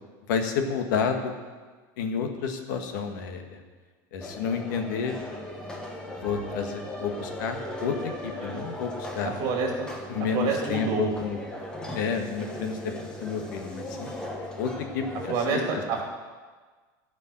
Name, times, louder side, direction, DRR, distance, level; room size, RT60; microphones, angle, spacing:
voice 1, 0.3-1.3 2.0-3.6 4.1-5.1 6.0-9.3 10.1-11.4 11.9-14.1 14.6-16.0, left 6 dB, 75° left, 5 dB, 1.5 m, -30 dB
sound 1, 4.2-15.3, left 1 dB, 10° left, 1.0 m, -38 dB
voice 2, 9.4-9.9 10.3-11.1 15.3-16.0, right 5 dB, 40° right, 0 dB, 2.6 m, -27 dB
14.0 x 5.4 x 8.6 m, 1.4 s
supercardioid pair, 175°, 10 cm